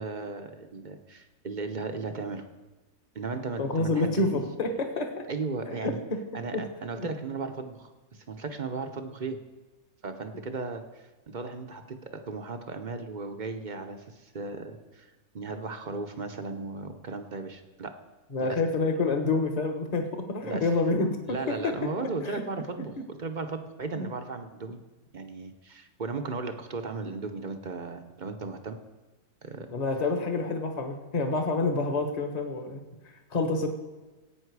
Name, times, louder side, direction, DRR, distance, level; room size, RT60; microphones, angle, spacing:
voice 1, 0.0-2.5 3.1-4.4 5.3-6.0 6.3-9.4 10.0-17.9 18.4-18.6 20.4-20.7 21.3-24.8 25.1-28.8 29.4-29.7, right 3 dB, 40° right, 6 dB, 0.8 m, -36 dB
voice 2, 3.6-5.3 5.6-6.2 6.5-6.6 7.0-7.1 18.3-21.6 22.3-22.4 23.9-24.1 29.7-32.8 33.3-33.7, left 3 dB, 30° left, 5 dB, 1.2 m, -28 dB
17.0 x 8.8 x 4.8 m, 1.2 s
omnidirectional pair, 1.6 m